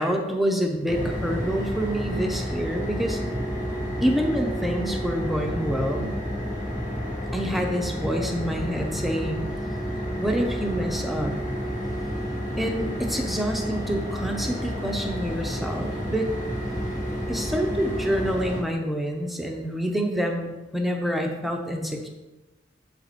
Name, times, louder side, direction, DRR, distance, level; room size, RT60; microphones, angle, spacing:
voice 1, 0.0-3.2 4.0-6.1 7.3-9.4 10.2-11.4 12.6-16.3 17.3-22.1, equal, ahead, 2 dB, 0.6 m, -27 dB
sound 1, 0.9-18.6, equal, 40° left, 1.3 m, -30 dB
7.3 x 4.6 x 4.1 m, 1.1 s
head